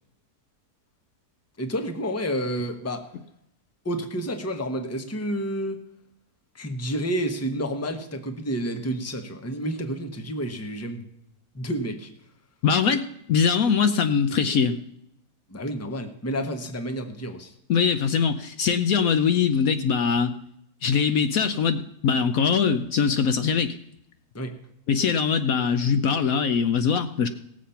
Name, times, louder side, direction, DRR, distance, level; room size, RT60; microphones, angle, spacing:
voice 1, 1.6-3.1 3.8-5.8 6.5-11.1 11.5-12.1 15.5-17.5 24.3-24.5, equal, 10° left, 6 dB, 0.9 m, -30 dB
voice 2, 12.6-14.8 17.7-20.3 20.8-23.8 24.9-27.3, left 6 dB, 65° left, 10 dB, 1.0 m, -22 dB
18.0 x 7.5 x 5.7 m, 0.77 s
omnidirectional pair, 1.7 m